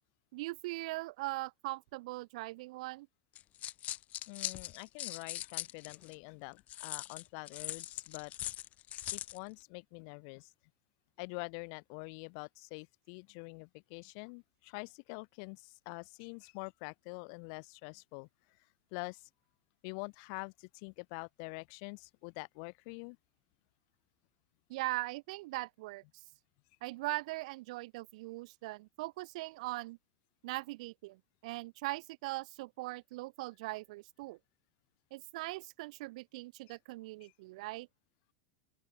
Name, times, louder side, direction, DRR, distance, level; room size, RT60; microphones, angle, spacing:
voice 1, 0.3-3.1 24.7-26.0 26.8-30.0 30.4-34.4 35.1-37.9, right 21 dB, 70° right, 2.8 m, -40 dB
sound 1, 3.4-6.1 6.7-9.4, left 14 dB, 40° left, 0.6 m, -41 dB
voice 2, 4.3-8.3 8.9-10.5 11.2-18.3 18.9-19.3 19.8-23.2 36.7-36.8 37.2-37.3, left 40 dB or more, 60° left, 4.3 m, -46 dB
open air
supercardioid pair, 120°, 4 cm